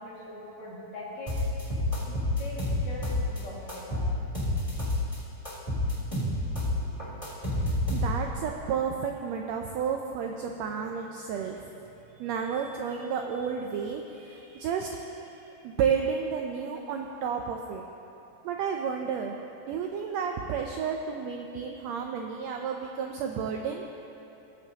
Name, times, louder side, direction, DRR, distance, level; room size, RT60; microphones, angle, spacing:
voice 1, 0.0-1.4 2.1-4.1, left 1 dB, 65° left, -6 dB, 3.3 m, -42 dB
sound 1, 1.3-3.4 3.7-5.2 5.5-8.4, left 1 dB, 10° left, 2.4 m, -29 dB
voice 2, 6.7-11.6 12.2-17.8 18.4-19.3 19.7-23.8, right 6 dB, 80° right, 2 dB, 1.5 m, -32 dB
18.5 x 8.1 x 2.9 m, 2.8 s
omnidirectional pair, 3.6 m